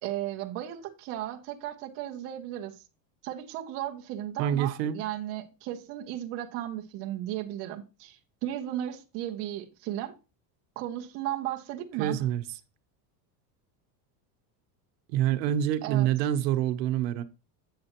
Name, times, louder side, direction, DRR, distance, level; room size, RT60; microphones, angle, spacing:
voice 1, 0.0-2.8 3.2-10.1 10.8-12.2 15.8-16.1, right 12 dB, 30° right, 0.7 m, -35 dB
voice 2, 4.4-5.0 12.0-12.4 15.1-17.2, right 11 dB, 80° right, 1.0 m, -26 dB
7.7 x 7.6 x 3.0 m
cardioid pair, 180°, 50 cm